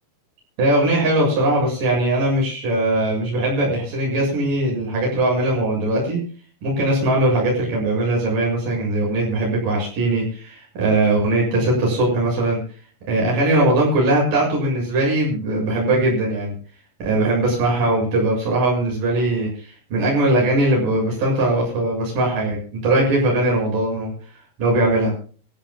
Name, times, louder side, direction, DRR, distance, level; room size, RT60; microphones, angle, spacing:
voice 1, 0.6-6.2 6.6-12.6 13.1-16.5 17.0-24.1 24.6-25.1, right 1 dB, 40° right, -2 dB, 8.9 m, -20 dB
26.5 x 15.0 x 2.4 m, 0.40 s
omnidirectional pair, 5.8 m